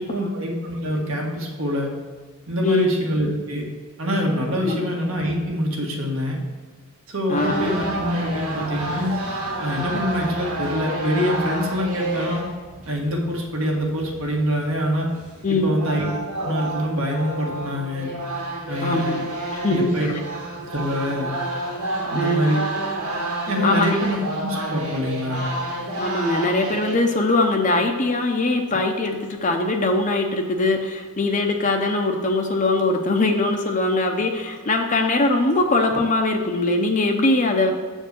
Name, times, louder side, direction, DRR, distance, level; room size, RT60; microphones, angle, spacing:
voice 1, 0.0-1.9 2.5-3.6 4.0-6.4 7.1-9.2 9.6-12.4 12.9-15.1 15.5-16.1 16.3-18.1 18.7-19.2 19.7-20.2 20.7-21.3 22.1-22.6 23.5-25.4, equal, 65° right, -1 dB, 1.7 m, -25 dB
voice 2, 2.6-2.9 4.7-4.9 7.3-7.7 15.4-15.7 18.8-19.3 19.6-20.1 22.1-22.5 23.6-24.0 26.0-37.7, left 2 dB, 35° left, 3 dB, 0.7 m, -21 dB
sound 1, 7.3-26.9, right 1 dB, 90° right, 2.0 m, -30 dB
8.0 x 4.5 x 6.6 m, 1.5 s
head